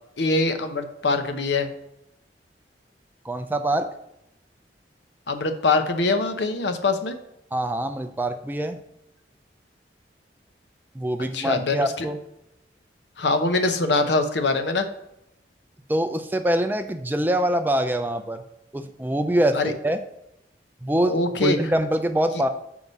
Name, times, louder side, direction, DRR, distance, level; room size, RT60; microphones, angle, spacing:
voice 1, 0.2-1.7 5.3-7.2 11.3-12.1 13.2-14.9 19.5-19.7 21.1-21.6, left 3 dB, 75° left, 8 dB, 0.7 m, -23 dB
voice 2, 3.2-3.9 7.5-8.8 11.0-12.2 15.9-18.4 18.7-20.0 20.8-21.2 21.4-22.5, right 1 dB, 10° right, 7 dB, 0.4 m, -24 dB
5.4 x 4.7 x 5.4 m, 0.83 s
head